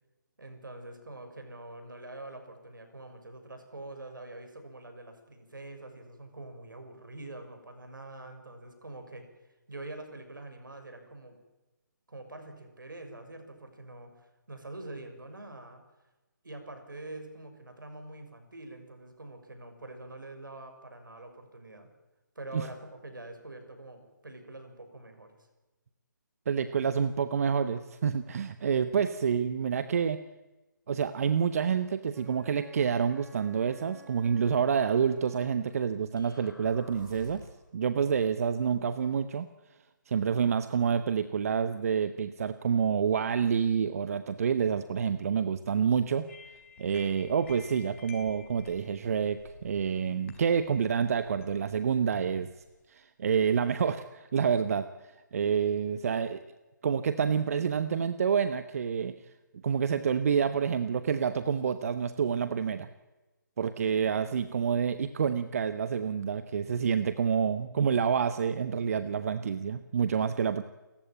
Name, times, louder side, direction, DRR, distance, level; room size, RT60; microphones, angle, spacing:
voice 1, 0.4-9.3 9.7-11.4 12.1-15.8 16.4-21.9 22.3-25.4, right 2 dB, 75° right, 6 dB, 6.5 m, -45 dB
voice 2, 26.5-30.2 30.9-37.4 37.7-39.5 40.1-46.3 46.8-52.5 52.9-54.9 55.3-56.4 56.8-59.1 59.6-62.9 63.6-70.6, right 7 dB, 45° right, 11 dB, 1.0 m, -28 dB
Wind instrument woodwind instrument, 32.1-35.7, right 5 dB, ahead, 2.6 m, -53 dB
sound 1, 36.2-37.7, left 2 dB, 80° left, 4.2 m, -50 dB
sound 2, 46.3-52.9, left 6 dB, 40° left, 4.8 m, -54 dB
29.5 x 15.0 x 8.9 m, 1.1 s
figure-of-eight pair, 145°, 11 cm